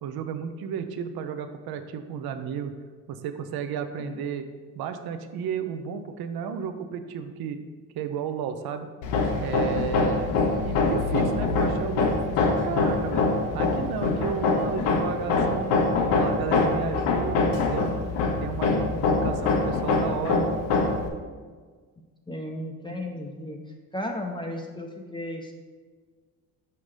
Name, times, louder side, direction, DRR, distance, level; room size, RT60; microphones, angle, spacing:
voice 1, 0.0-2.7 3.1-4.5 4.7-7.6 7.9-8.9 9.4-13.2 13.5-15.9 16.2-18.0 18.4-20.5, right 7 dB, 60° right, 8 dB, 0.7 m, -33 dB
Hammer, 9.0-21.1, left 3 dB, 80° left, 0.9 m, -24 dB
voice 2, 22.3-23.6 23.9-25.5, left 1 dB, 10° left, 1 dB, 0.6 m, -34 dB
5.7 x 5.2 x 3.2 m, 1.5 s
supercardioid pair, 70°, 41 cm